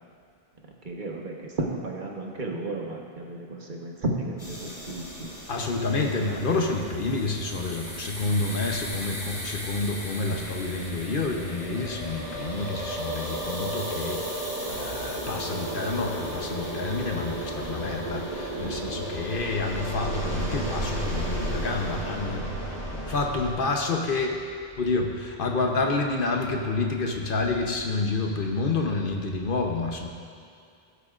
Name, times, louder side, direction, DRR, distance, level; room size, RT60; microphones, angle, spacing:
voice 1, 0.8-5.3 18.6-19.0, right 2 dB, 50° right, -1 dB, 1.3 m, -33 dB
sound 1, 4.4-23.5, right 1 dB, 35° left, 2.8 m, -34 dB
voice 2, 5.5-22.5 23.1-24.4 24.8-30.1, left 3 dB, 60° left, 2 dB, 1.0 m, -29 dB
18.5 x 8.1 x 2.5 m, 2.4 s
omnidirectional pair, 1.0 m